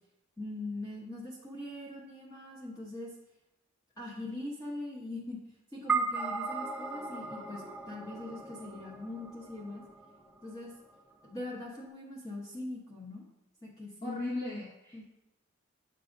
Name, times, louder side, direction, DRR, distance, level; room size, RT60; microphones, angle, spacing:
voice 1, 0.4-3.2 4.0-5.4 5.7-9.8 10.4-10.7 11.3-13.2 13.6-14.2 14.9-15.0, left 2 dB, 15° left, -5 dB, 1.1 m, -41 dB
sound 1, 5.9-10.5, right 4 dB, 5° right, 0.4 m, -36 dB
voice 2, 14.0-15.0, left 2 dB, 35° left, -7 dB, 1.4 m, -37 dB
8.2 x 6.4 x 2.6 m, 0.91 s
head